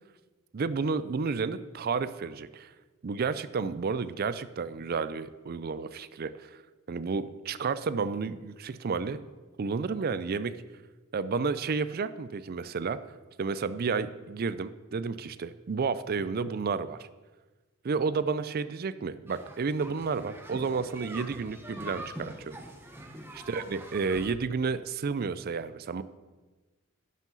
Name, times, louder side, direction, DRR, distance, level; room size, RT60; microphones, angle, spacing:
voice 1, 0.5-2.7 3.0-6.5 6.9-9.2 9.6-10.5 11.1-13.0 13.4-17.0 17.8-22.6 23.3-26.0, right 5 dB, 45° right, 14 dB, 0.4 m, -31 dB
sound 1, 19.3-24.3, right 1 dB, 10° right, 0.9 m, -44 dB
11.0 x 7.4 x 3.9 m, 1.3 s
head